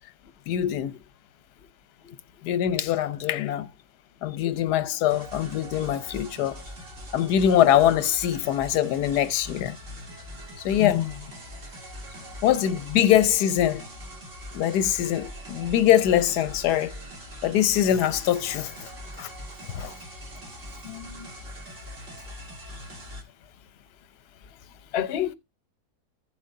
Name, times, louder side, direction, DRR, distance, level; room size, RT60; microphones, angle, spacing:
voice 1, 0.5-0.9 2.4-3.7 4.2-6.6 7.1-9.8 10.6-11.0 12.4-13.9 14.5-16.9 17.4-18.9 19.2-19.3 19.7-19.9, left 11 dB, 90° left, 1.3 m, -23 dB
sound 1, 5.1-23.2, equal, 50° right, 2.5 m, -42 dB
voice 2, 10.8-11.1 20.8-21.3 24.9-25.3, left 11 dB, 50° left, 0.9 m, -29 dB
15.0 x 7.5 x 2.6 m
omnidirectional pair, 1.7 m